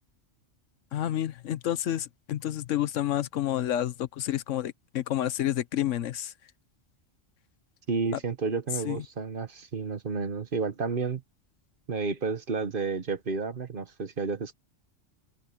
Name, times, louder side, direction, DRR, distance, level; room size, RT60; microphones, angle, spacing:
voice 1, 0.9-6.3 8.8-9.0, left 12 dB, 80° left, 1.1 m, -29 dB
voice 2, 7.9-11.2 11.9-14.5, right 4 dB, 45° right, 1.2 m, -31 dB
open air
omnidirectional pair, 1.3 m